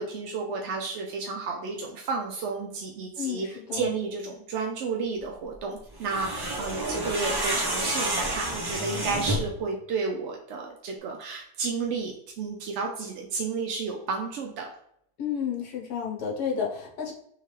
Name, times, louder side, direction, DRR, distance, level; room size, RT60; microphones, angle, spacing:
voice 1, 0.0-3.5 3.7-14.7, right 4 dB, 70° right, 1 dB, 0.7 m, -32 dB
voice 2, 3.2-3.9 15.2-17.1, left 7 dB, 80° left, -1 dB, 1.4 m, -31 dB
sound 1, 6.0-9.6, right 1 dB, 35° right, 0.3 m, -29 dB
3.7 x 3.1 x 3.1 m, 0.72 s
omnidirectional pair, 1.7 m